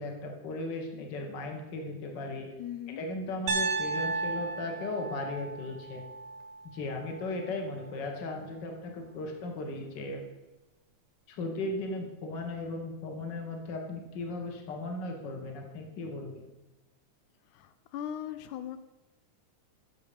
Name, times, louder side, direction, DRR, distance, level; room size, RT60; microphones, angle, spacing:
voice 1, 0.0-2.5 3.0-6.0 6.7-10.2 11.3-16.5, left 2 dB, 45° left, 3 dB, 1.7 m, -37 dB
voice 2, 2.6-3.0 17.5-18.8, left 10 dB, 85° left, 12 dB, 2.1 m, -39 dB
Piano, 3.5-7.5, right 3 dB, 80° right, 2.4 m, -34 dB
11.5 x 7.2 x 5.0 m, 1.1 s
omnidirectional pair, 3.4 m